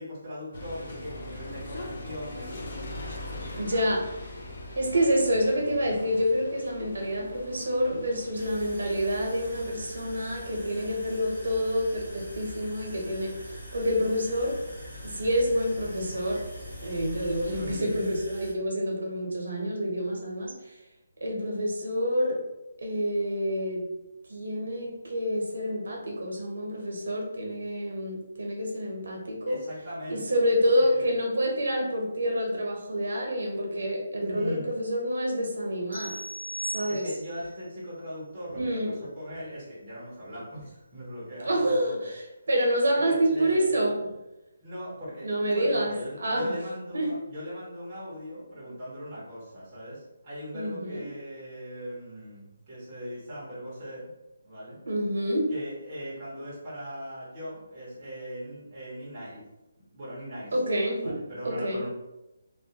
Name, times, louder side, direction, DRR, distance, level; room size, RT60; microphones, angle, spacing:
voice 1, 0.0-2.4 3.4-4.0 17.6-18.0 29.5-31.2 34.3-34.7 36.9-42.1 42.9-43.9 44.6-54.1 54.4-54.8 55.5-59.5 59.8-60.5 61.0-61.9, equal, 15° right, -9 dB, 0.7 m, -39 dB
sound 1, 0.5-17.8, left 1 dB, 35° left, 0.4 m, -42 dB
voice 2, 3.6-4.1 4.7-14.6 15.0-16.4 16.8-20.7 21.2-22.4 22.8-23.9 24.3-29.6 30.1-36.2 36.6-37.0 38.6-38.9 41.4-42.2 42.5-44.1 45.2-46.5 46.9-47.3 50.5-51.1 54.9-55.5 60.5-61.2 61.4-61.8, equal, 75° right, -1 dB, 0.7 m, -28 dB
sound 2, 8.3-18.5, right 1 dB, 5° left, 1.0 m, -45 dB
sound 3, 35.9-37.4, right 1 dB, 80° left, 0.9 m, -37 dB
2.2 x 2.1 x 2.7 m, 0.96 s
hypercardioid pair, 180°, 0 cm